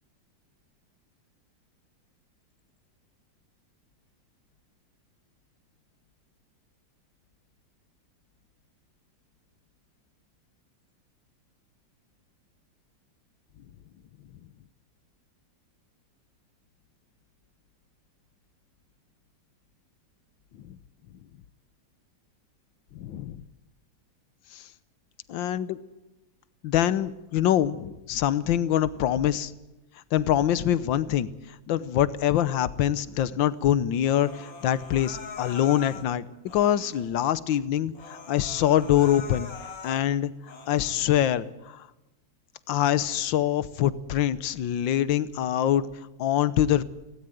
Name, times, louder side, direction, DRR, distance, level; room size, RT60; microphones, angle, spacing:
voice 1, 22.9-23.4 24.5-24.7 25.3-25.8 26.6-29.5 30.1-36.3 36.5-39.5 39.8-40.3 40.7-41.9 42.7-46.8, left 11 dB, 80° left, 17 dB, 1.6 m, -24 dB
Human voice, 34.0-36.1 36.5-37.1 37.5-37.6 37.9-40.0 40.4-41.0, left 4 dB, 50° left, 2.3 m, -42 dB
18.5 x 17.0 x 9.1 m, 1.0 s
omnidirectional pair, 2.0 m